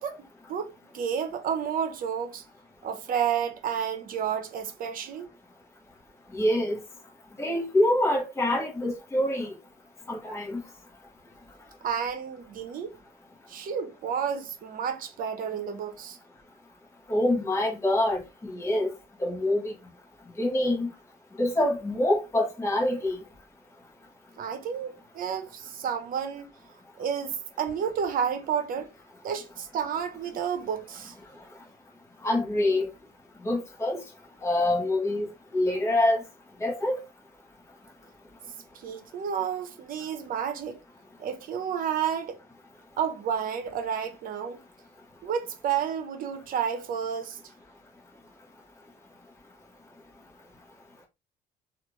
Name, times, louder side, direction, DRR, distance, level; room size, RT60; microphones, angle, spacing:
voice 1, 0.0-2.5 2.8-5.3 11.8-13.0 13.5-16.2 24.4-26.5 27.0-28.9 29.2-31.1 38.7-40.8 41.2-42.4 43.0-44.6 45.2-47.4, right 8 dB, 55° right, 0.8 m, -31 dB
voice 2, 6.3-6.8 7.4-9.5 10.1-10.6 17.1-18.9 19.2-19.7 20.4-20.9 21.4-23.2 32.2-32.9 33.4-34.0 34.4-36.2 36.6-37.0, left 1 dB, 15° left, 1.1 m, -25 dB
3.3 x 2.5 x 3.1 m
cardioid pair, 110°, 17 cm